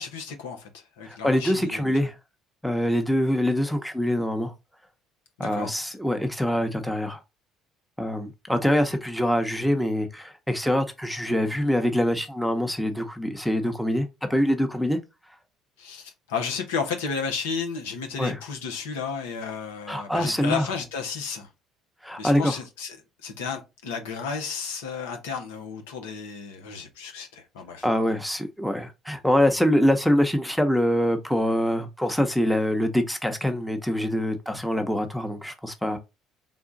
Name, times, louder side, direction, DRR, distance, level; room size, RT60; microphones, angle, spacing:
voice 1, 0.0-2.1 5.4-5.7 15.8-21.5 22.2-23.0 23.2-27.9, left 5 dB, 85° left, 0.9 m, -33 dB
voice 2, 1.0-2.1 2.6-4.5 5.4-7.2 8.0-15.0 18.2-18.4 19.9-20.7 22.0-22.5 27.8-36.0, equal, ahead, 0.8 m, -24 dB
3.8 x 2.3 x 3.9 m
hypercardioid pair, 70°, 0 cm